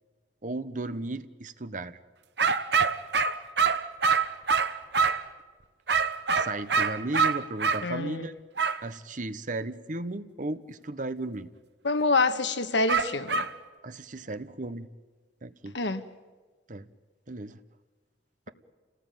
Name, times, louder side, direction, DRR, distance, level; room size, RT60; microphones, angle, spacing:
voice 1, 0.4-2.0 6.3-8.3 8.8-11.5 13.8-14.9 15.4-15.8 16.7-16.9 17.3-17.6, right 2 dB, 45° right, 1.1 m, -35 dB
sound 1, 2.4-5.3 5.9-7.8 8.6-8.8 12.9-13.5, right 5 dB, 70° right, 1.2 m, -25 dB
voice 2, 7.8-8.3 11.8-13.4 15.7-16.0, left 3 dB, 85° left, 1.5 m, -26 dB
28.5 x 18.0 x 9.2 m
head